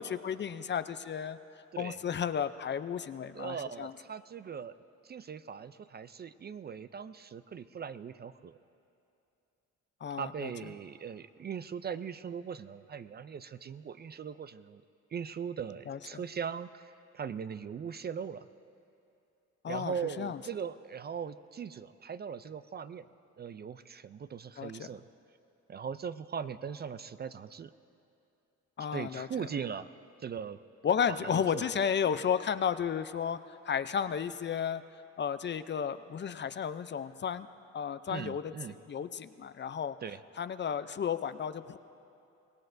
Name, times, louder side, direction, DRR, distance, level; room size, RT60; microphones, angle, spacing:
voice 1, 0.0-1.4 1.8-3.9 10.0-10.5 15.9-16.2 19.6-20.4 24.6-24.9 28.8-29.3 30.8-33.4 33.7-34.8 35.2-37.5 37.7-38.5 38.9-40.0 40.4-41.8, left 7 dB, 35° left, 13 dB, 0.5 m, -33 dB
voice 2, 3.3-4.7 5.0-8.6 10.2-14.8 15.1-18.5 19.7-23.0 23.4-25.0 25.7-27.7 28.9-29.9 30.2-30.6 31.1-31.7 38.1-38.8 40.0-40.2, right 7 dB, 35° right, 13 dB, 0.4 m, -40 dB
25.0 x 18.5 x 2.6 m, 2.7 s
cardioid pair, 90°, 30 cm